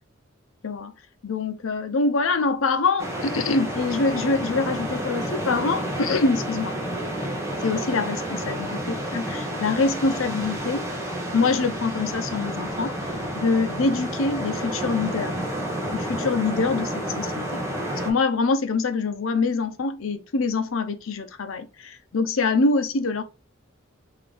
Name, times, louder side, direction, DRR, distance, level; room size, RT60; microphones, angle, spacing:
voice 1, 1.2-6.7 7.6-10.8 11.3-12.9 13.3-15.3 15.9-17.6 18.0-23.2, left 3 dB, 75° left, 0.6 m, -25 dB
sound 1, 3.0-18.1, right 1 dB, 15° right, 1.1 m, -30 dB
3.8 x 3.4 x 3.2 m
head